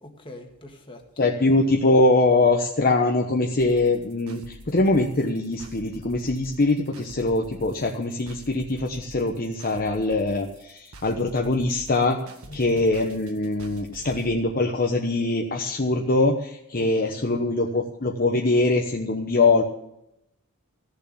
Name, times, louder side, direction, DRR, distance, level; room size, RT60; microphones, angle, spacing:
voice 1, 0.0-1.3 12.5-12.8 16.7-17.5, left 1 dB, 25° left, 2 dB, 2.0 m, -43 dB
voice 2, 1.2-12.2 12.5-19.6, left 2 dB, 40° left, 2 dB, 1.0 m, -22 dB
sound 1, 3.6-14.3, right 2 dB, 70° right, 1.8 m, -46 dB
14.5 x 7.0 x 9.8 m, 0.81 s
head